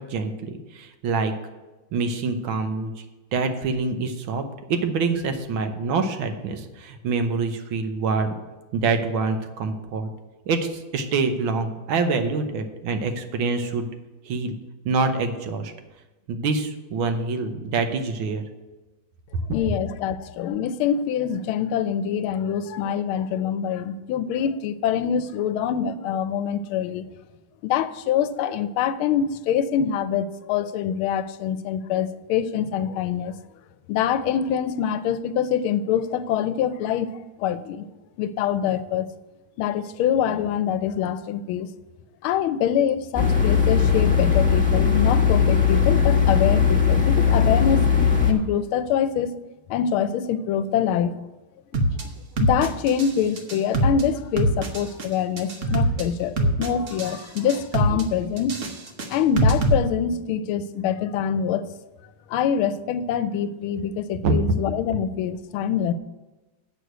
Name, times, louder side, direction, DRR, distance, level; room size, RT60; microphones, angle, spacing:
voice 1, 0.0-1.3 1.9-2.9 3.3-4.4 4.7-8.4 8.7-10.1 10.5-13.9 14.3-14.5 14.8-15.7 16.3-18.4 64.2-64.3, right 4 dB, 75° right, 7 dB, 1.7 m, -25 dB
voice 2, 19.5-27.0 27.6-33.3 33.9-37.9 38.2-39.1 39.6-41.7 42.2-47.8 48.2-49.3 49.7-51.1 52.0-52.1 52.4-58.6 59.1-61.7 62.3-65.9, left 8 dB, 90° left, 13 dB, 1.5 m, -25 dB
sound 1, 43.1-48.3, left 6 dB, 5° left, 1.0 m, -19 dB
sound 2, 51.7-52.0 52.4-53.1 53.4-54.0 54.4-55.0 55.4-56.0 56.4-57.1 57.4-58.0 58.4-59.7, right 1 dB, 45° right, 1.1 m, -22 dB
8.0 x 6.4 x 7.9 m, 1.1 s
omnidirectional pair, 2.2 m